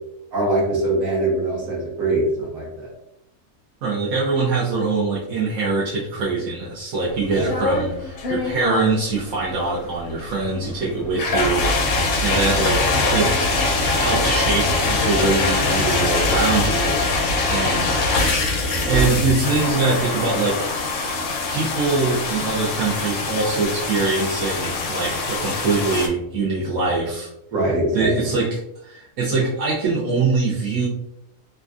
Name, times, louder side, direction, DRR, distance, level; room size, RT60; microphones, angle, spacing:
voice 1, 0.3-2.9 7.3-7.5 27.5-28.3, right 1 dB, 70° right, -4 dB, 1.4 m, -22 dB
voice 2, 3.8-13.3 13.9-17.9 18.9-20.7 21.5-27.3 27.9-30.9, right 3 dB, 90° right, -6 dB, 1.1 m, -23 dB
sound 1, 7.1-26.1, left 2 dB, 60° left, 0.6 m, -23 dB
3.3 x 2.4 x 2.4 m, 0.82 s
omnidirectional pair, 1.5 m